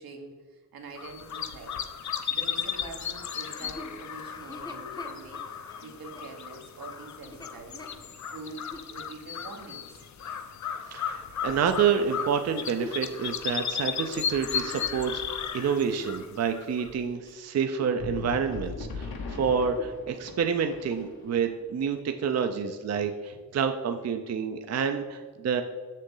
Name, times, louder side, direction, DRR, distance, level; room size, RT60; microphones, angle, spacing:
voice 1, 0.0-1.8 2.3-5.4 5.8-7.8 8.3-10.0 18.4-19.4 23.0-23.5 24.2-24.3, right 3 dB, 85° right, 2 dB, 1.3 m, -45 dB
sound 1, 1.0-17.0, left 7 dB, 55° left, 0.5 m, -35 dB
Chuckle chortle, 3.3-8.9 9.5-9.6 12.3-16.2 16.9-18.3 18.6-18.9 19.3-20.1 20.4-20.5 20.9-21.3 22.0-22.1, left 2 dB, 10° left, 0.6 m, -46 dB
voice 2, 10.9-19.1 19.4-25.6, right 6 dB, 50° right, 7 dB, 0.5 m, -28 dB
sound 2, 18.0-21.5, left 3 dB, 90° left, 1.2 m, -39 dB
7.0 x 6.5 x 3.8 m, 1.4 s
wide cardioid pair, 165°, 35 cm